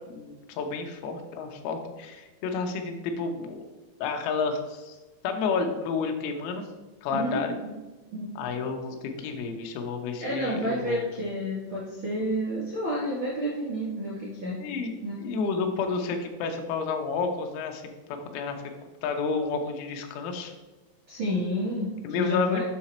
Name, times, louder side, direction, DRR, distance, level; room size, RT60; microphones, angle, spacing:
voice 1, 0.1-3.6 4.0-5.0 5.2-6.7 7.0-7.6 8.4-11.0 14.6-17.8 18.1-18.6 19.0-20.5 22.0-22.6, left 4 dB, 90° left, 4 dB, 3.7 m, -30 dB
voice 2, 7.1-7.7 8.1-8.5 10.2-14.6 15.0-15.2 21.1-22.6, equal, 75° right, -7 dB, 1.1 m, -30 dB
9.3 x 6.0 x 4.3 m, 1.2 s
omnidirectional pair, 6.0 m